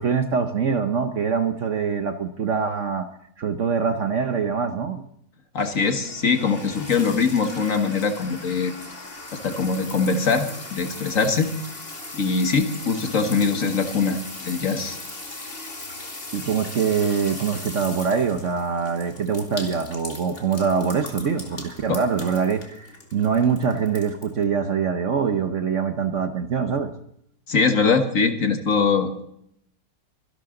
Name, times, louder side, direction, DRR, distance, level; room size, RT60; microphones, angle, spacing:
voice 1, 0.0-3.1 3.4-5.0 16.3-26.9, right 6 dB, 55° right, 8 dB, 1.0 m, -24 dB
voice 2, 5.5-8.7 9.3-11.5 12.1-15.0 21.9-22.0 27.5-29.2, left 5 dB, 50° left, 7 dB, 1.7 m, -22 dB
sound 1, 5.6-24.4, left 2 dB, 35° left, 2.6 m, -39 dB
25.0 x 12.0 x 3.8 m, 0.72 s
omnidirectional pair, 1.9 m